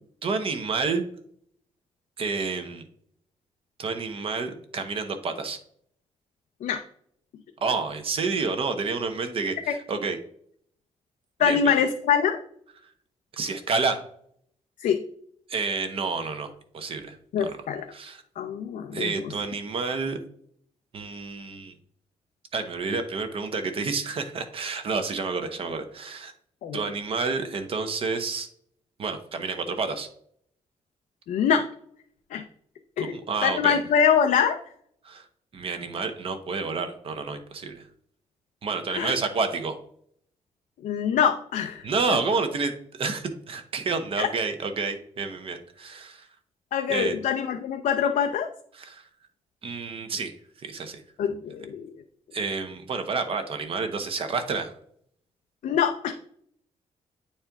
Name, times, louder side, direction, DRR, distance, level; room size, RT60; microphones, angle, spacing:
voice 1, 0.2-1.0 2.2-2.8 3.8-5.6 7.6-10.2 11.4-11.7 13.3-14.0 15.5-17.5 17.9-18.2 18.9-20.2 20.9-21.7 22.5-26.3 26.7-28.5 29.0-30.1 33.0-33.8 35.0-35.2 35.5-37.9 38.6-39.8 41.8-46.3 46.9-47.2 48.8-49.0 49.6-50.3 50.6-51.0 52.3-54.7, right 4 dB, 45° right, 7 dB, 0.8 m, -29 dB
voice 2, 11.4-12.4 14.8-15.0 17.3-17.9 18.4-19.1 26.6-26.8 31.3-31.7 32.3-32.4 33.0-34.6 38.9-39.1 40.8-41.9 44.2-44.3 46.7-48.5 51.2-52.0 55.6-56.1, left 7 dB, 90° left, 5 dB, 0.5 m, -24 dB
8.8 x 4.3 x 3.5 m, 0.65 s
wide cardioid pair, 175°, 13 cm